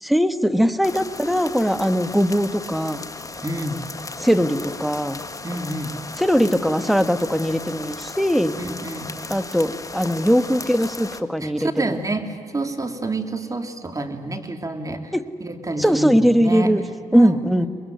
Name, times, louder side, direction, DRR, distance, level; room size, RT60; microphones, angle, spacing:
voice 1, 0.0-3.0 4.2-5.2 6.2-8.6 9.3-12.0 15.1-15.2 15.8-16.8 17.1-17.7, equal, ahead, 11 dB, 1.5 m, -20 dB
sound 1, 0.8-11.2, left 3 dB, 25° left, 1.6 m, -36 dB
voice 2, 3.4-3.8 5.4-6.0 8.6-9.1 11.4-15.1 15.4-16.7 17.1-17.7, right 2 dB, 25° right, 6 dB, 3.0 m, -28 dB
24.0 x 21.5 x 9.4 m, 2.4 s
supercardioid pair, 60°, 13 cm